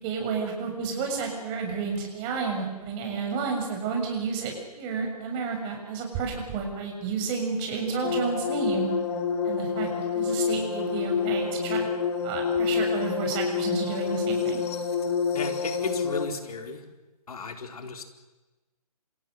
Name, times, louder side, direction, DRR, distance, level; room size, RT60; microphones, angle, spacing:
voice 1, 0.0-8.9 9.4-9.9 10.1-11.9 12.2-14.6, right 5 dB, 25° right, 2 dB, 7.0 m, -31 dB
sound 1, 8.0-16.3, left 6 dB, 45° left, 3.7 m, -28 dB
voice 2, 15.3-16.8 17.3-18.0, left 4 dB, 65° left, 5 dB, 4.6 m, -34 dB
27.5 x 27.5 x 6.5 m, 1.1 s
figure-of-eight pair, 145°, 20 cm